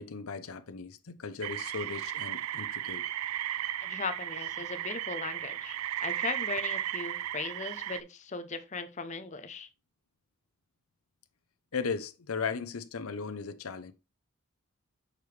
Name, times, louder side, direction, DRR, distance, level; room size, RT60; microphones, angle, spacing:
voice 1, 0.0-3.0 11.7-13.9, left 5 dB, 80° left, 0.7 m, -37 dB
sound 1, 1.4-8.0, right 12 dB, 80° right, 0.3 m, -35 dB
voice 2, 3.8-9.7, left 4 dB, 35° left, 0.6 m, -38 dB
6.6 x 4.8 x 3.3 m
head